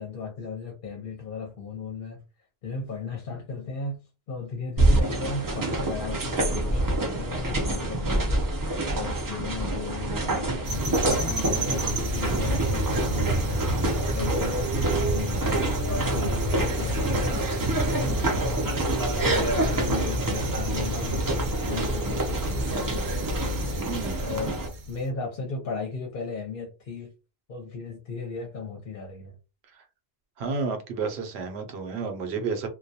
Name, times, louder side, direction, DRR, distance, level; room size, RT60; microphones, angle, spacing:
voice 1, 0.0-2.2 2.6-4.0 4.3-8.4 8.9-13.7 14.1-17.5 17.9-21.3 21.7-23.1 24.2-27.1 27.5-29.4, left 4 dB, 60° left, 0.7 m, -36 dB
sound 1, 4.8-24.7, right 2 dB, 35° right, 0.3 m, -27 dB
sound 2, 10.6-25.0, right 1 dB, 60° right, 0.7 m, -30 dB
Bass guitar, 14.1-23.7, left 1 dB, 15° left, 0.6 m, -40 dB
voice 2, 23.8-24.4 30.4-32.7, right 4 dB, 85° right, 0.9 m, -31 dB
2.2 x 2.2 x 2.6 m
omnidirectional pair, 1.0 m